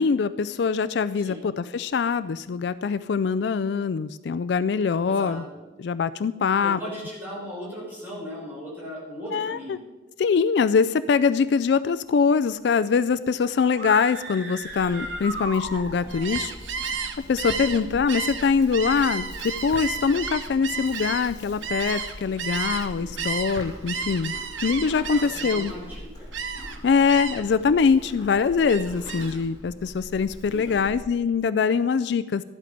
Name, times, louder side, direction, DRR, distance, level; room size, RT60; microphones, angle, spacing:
voice 1, 0.0-5.4 5.8-6.8 9.3-9.8 10.2-16.5 16.9-17.0 17.3-24.4 24.6-25.7 26.8-32.4, left 5 dB, 65° left, 15 dB, 0.3 m, -23 dB
voice 2, 5.1-5.4 6.6-9.8 17.7-17.9 23.0-23.2 23.8-23.9 25.1-26.3 30.5-30.8, equal, 10° right, -6 dB, 5.4 m, -37 dB
sound 1, 13.7-16.3, right 1 dB, 65° right, 3.2 m, -35 dB
Livestock farm animals working animals, 14.6-31.1, equal, 20° left, 3.5 m, -43 dB
Gull seagull, 16.1-22.9 23.2-25.9 26.3-26.8 27.1-27.6 27.9-29.4, right 5 dB, 85° right, 1.1 m, -32 dB
14.0 x 11.0 x 5.1 m, 1.2 s
head